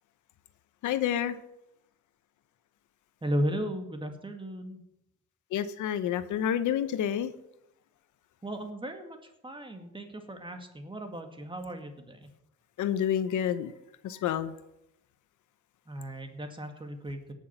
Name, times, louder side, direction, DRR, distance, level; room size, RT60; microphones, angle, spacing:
voice 1, 0.8-1.4 5.5-7.3 12.8-13.7 14.0-14.5, left 10 dB, 75° left, 12 dB, 0.9 m, -29 dB
voice 2, 3.2-4.8 8.4-12.3 15.9-17.3, equal, 15° right, 5 dB, 2.0 m, -35 dB
17.5 x 6.3 x 5.8 m, 0.86 s
cardioid pair, 90°, 30 cm